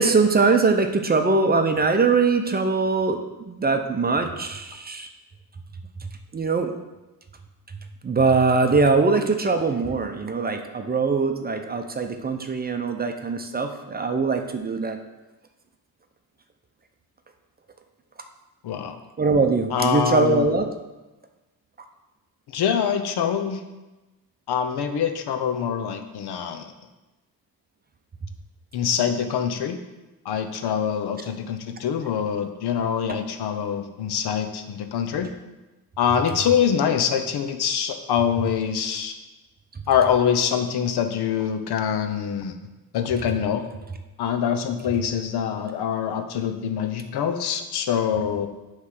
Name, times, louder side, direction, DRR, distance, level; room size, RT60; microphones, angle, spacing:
voice 1, 0.0-3.2 3.5-5.1 6.3-6.7 8.0-15.0 19.2-20.7, right 4 dB, 25° right, 5 dB, 0.5 m, -22 dB
voice 2, 18.6-19.0 19.7-20.5 22.5-23.6 24.5-26.7 28.7-29.8 30.2-35.3 36.0-39.1 39.9-42.5 42.9-43.6 44.2-48.5, left 8 dB, 80° left, 6 dB, 0.8 m, -24 dB
9.7 x 3.2 x 5.8 m, 1.1 s
cardioid pair, 135°, 39 cm